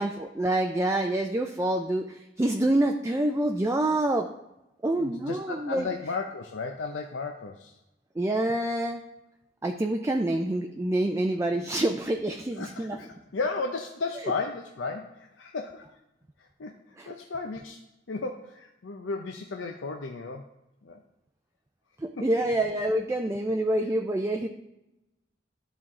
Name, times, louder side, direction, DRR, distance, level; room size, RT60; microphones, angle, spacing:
voice 1, 0.0-4.3 4.8-5.8 8.2-9.0 9.6-13.0 17.0-17.1 22.0-24.5, right 1 dB, 15° right, 4 dB, 0.4 m, -27 dB
voice 2, 4.9-7.8 12.6-15.9 16.4-17.8 18.1-20.5 20.8-21.0 22.2-22.3, left 4 dB, 85° left, 3 dB, 0.6 m, -34 dB
12.0 x 4.5 x 3.7 m, 0.91 s
head